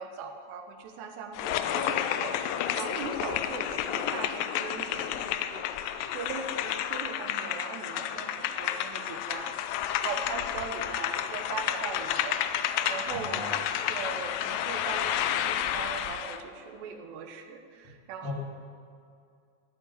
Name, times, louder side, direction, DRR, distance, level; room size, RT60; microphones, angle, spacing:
voice 1, 0.0-5.7 6.1-9.6 10.0-13.4 13.9-18.3, right 5 dB, 85° right, 6 dB, 3.4 m, -40 dB
sound 1, 1.3-16.4, left 10 dB, 85° left, 2.0 m, -31 dB
voice 2, 13.1-13.6 18.2-18.3, left 1 dB, 15° left, -3 dB, 0.8 m, -37 dB
14.0 x 9.1 x 9.6 m, 2.4 s
omnidirectional pair, 4.8 m